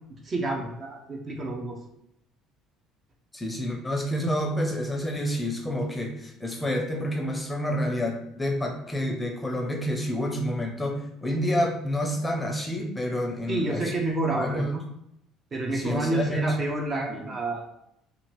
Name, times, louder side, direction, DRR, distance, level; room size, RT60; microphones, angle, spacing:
voice 1, 0.2-1.8 13.5-14.8 15.5-17.7, right 2 dB, 35° right, 1 dB, 0.7 m, -29 dB
voice 2, 3.3-13.9 14.3-14.7 15.7-16.6 17.1-17.3, equal, 15° left, 2 dB, 0.6 m, -28 dB
2.8 x 2.5 x 3.1 m, 0.78 s
supercardioid pair, 80°, 0 cm